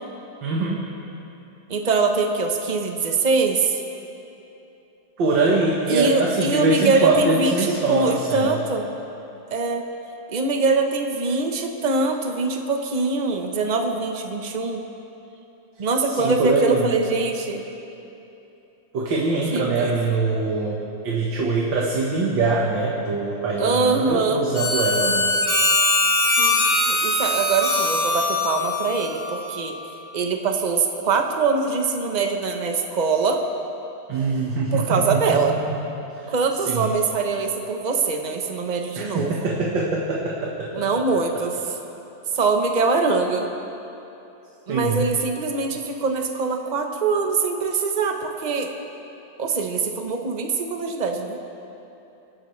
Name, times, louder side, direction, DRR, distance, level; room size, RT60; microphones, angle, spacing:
voice 1, 0.4-0.8 5.2-8.5 16.1-16.9 18.9-25.2 34.1-35.2 35.5-35.6 36.2-36.3 36.6-36.9 39.0-40.8 44.7-45.1, right 3 dB, 85° right, -3 dB, 2.1 m, -23 dB
voice 2, 1.7-3.8 5.9-8.9 9.5-9.9 10.3-14.8 15.8-17.7 19.5-19.9 23.6-24.5 26.4-29.8 30.1-33.4 34.7-35.6 36.3-39.3 40.7-41.5 42.3-43.5 44.7-48.7 49.4-51.4, right 4 dB, 30° right, 3 dB, 0.9 m, -23 dB
Harmonica, 24.5-29.7, left 2 dB, 80° left, 3.4 m, -22 dB
25.5 x 12.5 x 3.3 m, 2.9 s
omnidirectional pair, 2.0 m